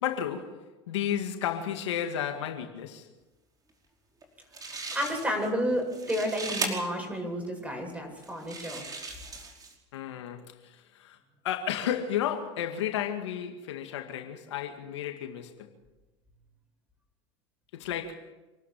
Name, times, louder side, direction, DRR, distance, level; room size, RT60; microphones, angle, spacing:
voice 1, 0.0-3.1 9.9-11.2 11.4-15.7 17.7-18.3, left 9 dB, 85° left, 2.2 m, -33 dB
sound 1, 4.2-4.3 4.5-5.5 5.8-6.7 7.4-7.5 8.2-9.7, right 3 dB, 25° right, 5.2 m, -37 dB
voice 2, 4.9-8.9, equal, 10° right, 7.9 m, -31 dB
27.0 x 12.5 x 7.6 m
supercardioid pair, 100°, 14 cm